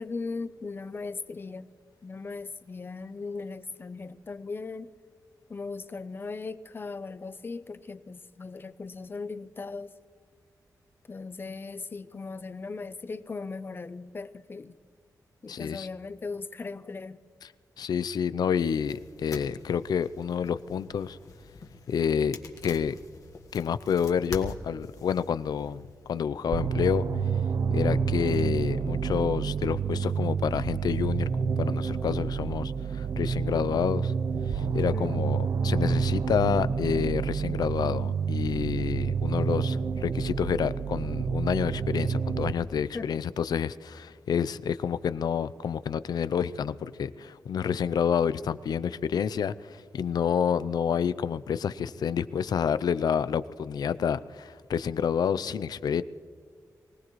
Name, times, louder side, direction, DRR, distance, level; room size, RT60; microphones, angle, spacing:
voice 1, 0.0-1.7 2.0-4.9 5.5-10.0 11.1-14.8 15.4-17.2 34.9-35.4 42.9-43.1, left 4 dB, 35° left, 13 dB, 0.6 m, -38 dB
voice 2, 15.5-15.9 17.8-21.2 21.9-22.4 22.6-23.0 23.5-27.1 27.7-31.3 31.6-34.1 34.5-56.0, left 7 dB, 85° left, 15 dB, 0.5 m, -29 dB
sound 1, 18.7-26.3, left 3 dB, 60° left, 1.5 m, -45 dB
sound 2, 26.5-42.5, right 6 dB, 60° right, 0.6 m, -28 dB
24.0 x 18.0 x 3.1 m, 2.1 s
wide cardioid pair, 140°, 7 cm